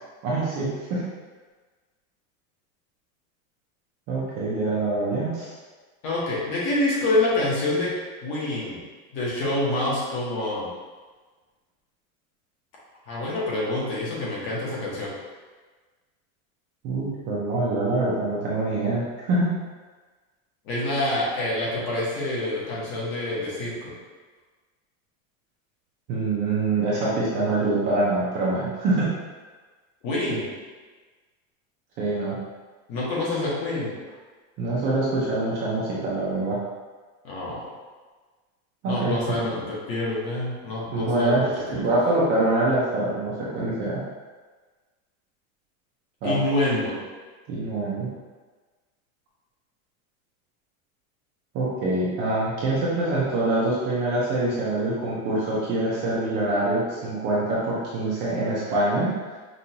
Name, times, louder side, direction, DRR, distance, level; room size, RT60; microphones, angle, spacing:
voice 1, 0.2-1.0 4.1-5.5 16.8-19.5 26.1-29.1 32.0-32.4 34.6-36.6 38.8-39.2 40.9-44.0 46.2-46.4 47.5-48.1 51.5-59.1, right 2 dB, 25° right, -7 dB, 0.6 m, -25 dB
voice 2, 6.0-7.9 8.2-8.8 9.1-10.7 13.1-15.1 20.6-23.9 30.0-30.5 32.9-33.9 37.2-37.7 38.8-41.9 46.2-47.0, left 2 dB, 35° left, -6 dB, 1.2 m, -27 dB
5.3 x 2.5 x 2.9 m, 1.3 s
supercardioid pair, 175°, 40 cm